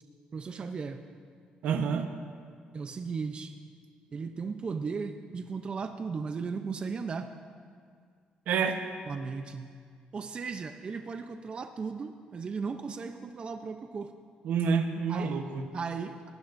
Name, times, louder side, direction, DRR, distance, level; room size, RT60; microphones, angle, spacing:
voice 1, 0.3-1.0 2.7-3.5 4.1-7.3 9.1-9.8 10.1-14.1 15.1-15.4 15.7-16.3, right 5 dB, 40° right, 7 dB, 0.6 m, -36 dB
voice 2, 1.6-2.1 8.5-8.8 14.4-15.6, right 6 dB, 75° right, 6 dB, 1.0 m, -28 dB
20.0 x 15.5 x 2.6 m, 2.1 s
cardioid pair, 100°, 3 cm